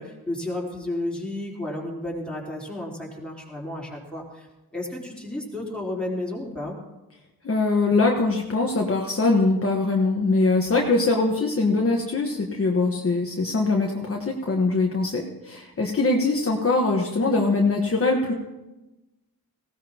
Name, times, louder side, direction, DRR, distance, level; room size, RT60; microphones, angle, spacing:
voice 1, 0.0-4.5 4.7-6.8, left 1 dB, 5° left, -4 dB, 3.7 m, -32 dB
voice 2, 7.4-18.3, left 3 dB, 40° left, -1 dB, 1.3 m, -22 dB
19.0 x 16.5 x 2.9 m, 1.0 s
wide cardioid pair, 115°, 36 cm